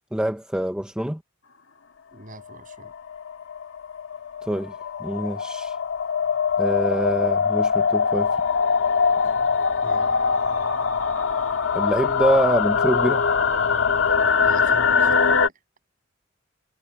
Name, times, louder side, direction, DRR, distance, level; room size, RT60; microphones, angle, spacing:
voice 1, 0.1-1.2 4.4-4.7 5.0-5.8 6.6-8.3 11.7-13.2, equal, 5° right, 0.7 m, -25 dB
voice 2, 2.1-2.9 9.8-10.1 14.4-15.5, right 1 dB, 40° right, 7.5 m, -44 dB
sound 1, 2.5-15.5, left 5 dB, 80° left, 1.9 m, -22 dB
head